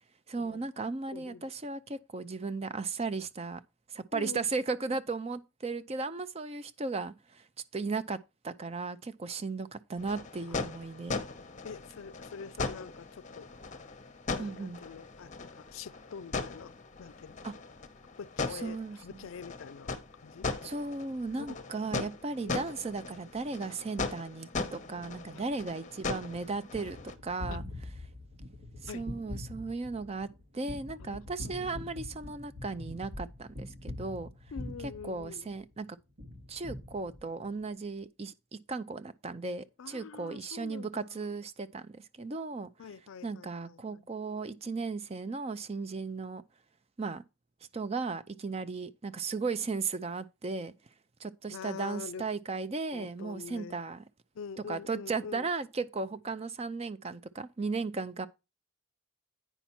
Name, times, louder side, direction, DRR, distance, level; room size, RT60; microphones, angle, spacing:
voice 1, 0.3-3.6 3.9-7.5 7.7-8.2 8.4-11.2 14.4-14.8 17.4-17.5 18.5-19.3 20.6-27.0 27.2-27.6 28.8-30.3 30.5-34.3 34.8-35.9 36.5-38.3 38.7-42.7 43.2-46.4 47.0-47.2 47.7-50.7 51.2-54.0 54.7-58.3, right 4 dB, 30° right, 0.5 m, -36 dB
voice 2, 1.1-1.4 4.1-4.4 10.5-10.6 11.6-13.5 14.4-16.7 17.0-17.4 18.2-19.9 20.2-20.5 21.4-21.6 22.4-22.6 27.5-27.6 28.9-29.1 31.0-31.8 34.5-35.5 39.8-41.2 42.8-44.0 51.5-52.3 52.9-53.8 54.4-55.5, left 6 dB, 75° left, 0.4 m, -45 dB
sound 1, 10.0-27.1, left 3 dB, 35° left, 0.8 m, -39 dB
Gunshot gunfire, 26.1-35.8 36.2-37.6, left 1 dB, 80° right, 2.3 m, -44 dB
9.2 x 5.6 x 4.3 m
head